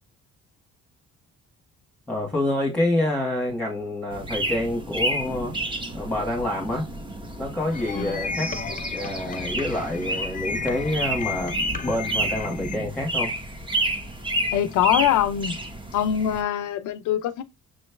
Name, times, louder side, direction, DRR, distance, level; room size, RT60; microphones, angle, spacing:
voice 1, 2.1-5.5 5.9-6.9 7.4-8.5 8.9-13.3, left 1 dB, 5° left, 1.3 m, -27 dB
sound 1, 4.1-16.4, right 1 dB, 15° right, 0.9 m, -30 dB
sound 2, 7.7-12.8, left 5 dB, 25° left, 0.5 m, -34 dB
voice 2, 14.5-15.6 15.9-17.4, left 10 dB, 85° left, 0.6 m, -23 dB
6.2 x 3.1 x 2.2 m
cardioid pair, 90°, 30 cm